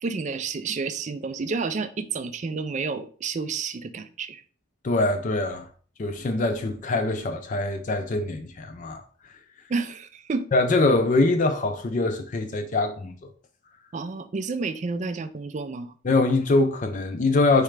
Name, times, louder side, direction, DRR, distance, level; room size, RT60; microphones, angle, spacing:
voice 1, 0.0-4.4 9.7-10.5 13.9-15.9, right 4 dB, 35° right, 0.3 m, -30 dB
voice 2, 4.8-5.7 6.0-9.0 10.5-13.3 16.0-17.6, left 2 dB, 35° left, 0.4 m, -23 dB
4.8 x 3.2 x 3.2 m
head